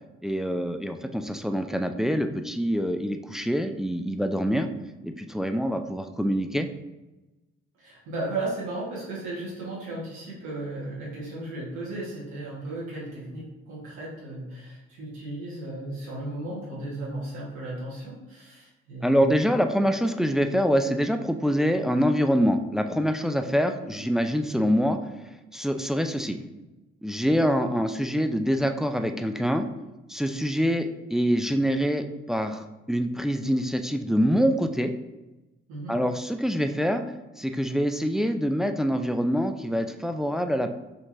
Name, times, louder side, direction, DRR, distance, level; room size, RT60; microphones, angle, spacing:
voice 1, 0.2-4.7 5.0-6.7 19.0-25.0 25.5-26.4 27.0-29.7 30.1-34.9 35.9-37.0 37.4-40.7, equal, ahead, 7 dB, 0.3 m, -25 dB
voice 2, 7.8-19.4 23.8-23.9 35.7-36.0, right 2 dB, 80° right, -5 dB, 1.4 m, -35 dB
4.4 x 2.9 x 2.6 m, 1.0 s
hypercardioid pair, 45°, 30 cm